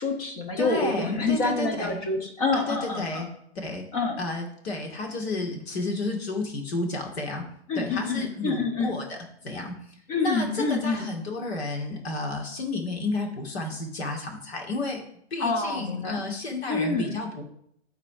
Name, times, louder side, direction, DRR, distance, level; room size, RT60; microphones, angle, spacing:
voice 1, 0.0-3.3 3.9-4.2 7.7-8.9 10.1-11.1 15.4-16.2 16.7-17.2, left 3 dB, 35° left, 3 dB, 1.6 m, -27 dB
voice 2, 0.6-2.0 2.5-3.3 3.6-3.8 4.2-7.4 7.8-9.7 10.2-15.0 15.3-17.4, left 2 dB, 65° left, 2 dB, 2.4 m, -31 dB
11.0 x 4.1 x 5.0 m, 0.70 s
hypercardioid pair, 165°, 34 cm